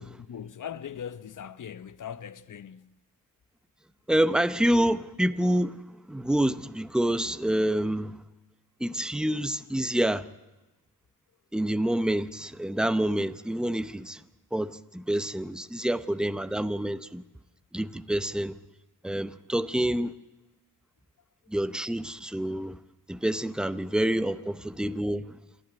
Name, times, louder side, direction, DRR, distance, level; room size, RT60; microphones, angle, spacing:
voice 1, 0.0-3.0 24.3-24.4, left 8 dB, 60° left, 0.9 m, -40 dB
voice 2, 4.1-5.8 6.1-8.2 8.8-10.3 11.5-14.2 14.5-17.2 17.7-18.6 19.0-20.1 21.5-22.8 23.1-25.4, right 1 dB, ahead, 0.8 m, -27 dB
27.5 x 13.0 x 9.2 m
wide cardioid pair, 100°, 35 cm